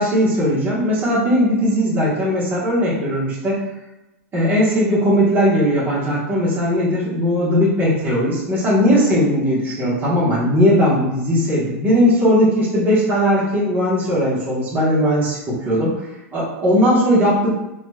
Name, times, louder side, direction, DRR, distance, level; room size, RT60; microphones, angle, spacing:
voice 1, 0.0-3.6 4.3-16.0 16.3-17.5, equal, 25° right, -8 dB, 1.2 m, -18 dB
3.0 x 2.9 x 2.3 m, 0.96 s
hypercardioid pair, 120°, 8 cm